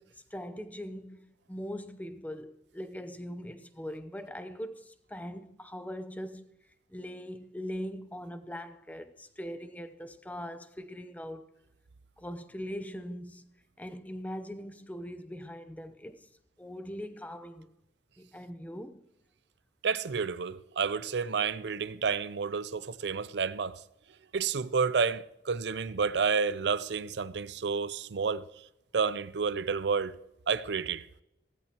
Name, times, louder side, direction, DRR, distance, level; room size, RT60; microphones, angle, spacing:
voice 1, 0.0-6.5 6.9-11.5 12.2-13.5 13.8-16.3 16.6-17.7 18.2-19.0, equal, 10° left, 0.7 m, -41 dB
voice 2, 19.8-23.8 24.3-28.5 28.9-30.2 30.5-31.1, right 5 dB, 80° right, 0.5 m, -30 dB
16.5 x 14.5 x 3.0 m
head